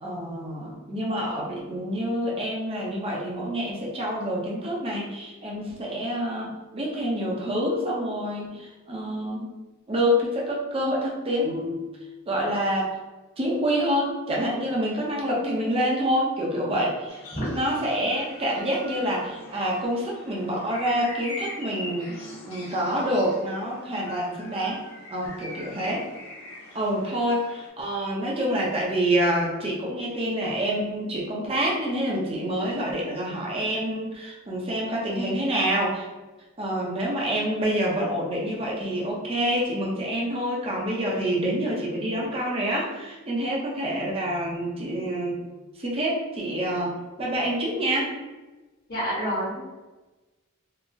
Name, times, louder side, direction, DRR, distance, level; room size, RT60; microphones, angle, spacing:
voice 1, 0.0-9.5 9.9-11.8 12.3-12.9 13.4-17.2 17.5-24.8 25.1-26.0 26.7-36.1 36.6-45.4 45.8-46.9 47.2-48.1, equal, 25° right, -3 dB, 0.6 m, -27 dB
sound 1, 17.1-27.7, left 1 dB, 85° left, 0.8 m, -42 dB
voice 2, 48.9-49.6, equal, 50° left, -8 dB, 1.2 m, -28 dB
3.8 x 2.0 x 2.5 m, 1.2 s
head